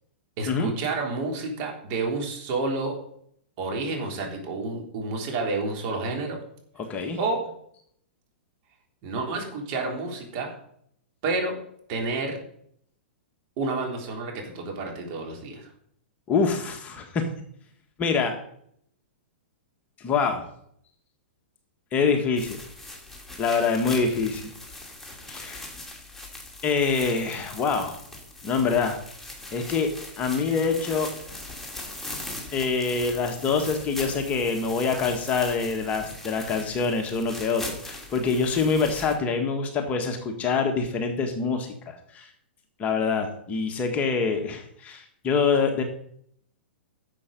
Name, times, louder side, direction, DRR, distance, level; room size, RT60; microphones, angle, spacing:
voice 1, 0.4-3.0 3.6-6.4 7.2-7.4 9.0-10.5 11.2-11.6 11.9-12.4 13.6-15.7, right 3 dB, 45° right, 1 dB, 3.6 m, -29 dB
voice 2, 16.3-17.2 18.0-18.3 20.0-20.4 21.9-22.6 23.4-24.5 25.3-25.7 26.6-28.0 28.4-29.0 29.5-29.9 30.2-31.1 32.5-42.3 42.8-45.8, left 5 dB, 25° left, 4 dB, 1.6 m, -25 dB
sound 1, 22.4-39.2, left 2 dB, 5° left, 2.5 m, -40 dB
11.5 x 7.3 x 5.3 m, 0.68 s
hypercardioid pair, 130°, 6 cm